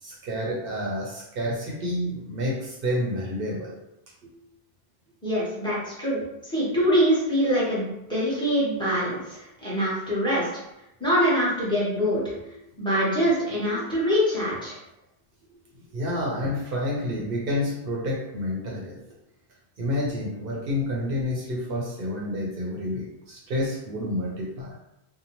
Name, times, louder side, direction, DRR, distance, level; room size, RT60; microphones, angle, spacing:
voice 1, 0.0-3.8 4.2-4.3 12.4-12.5 13.2-13.3 15.9-19.0 19.8-24.8, left 1 dB, 65° right, -3 dB, 0.8 m, -29 dB
voice 2, 5.2-10.5 11.0-12.2 12.8-14.8, equal, 5° left, -7 dB, 0.9 m, -24 dB
2.7 x 2.1 x 2.9 m, 0.86 s
omnidirectional pair, 1.0 m